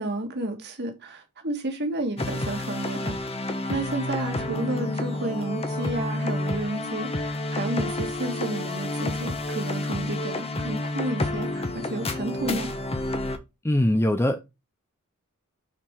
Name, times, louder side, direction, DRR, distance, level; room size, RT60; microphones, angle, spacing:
voice 1, 0.0-3.1 3.7-12.7, right 2 dB, 50° right, 1.8 m, -31 dB
sound 1, 2.2-13.4, left 2 dB, 25° left, 1.0 m, -29 dB
voice 2, 13.6-14.4, left 1 dB, 10° left, 0.5 m, -21 dB
6.0 x 4.5 x 4.7 m
head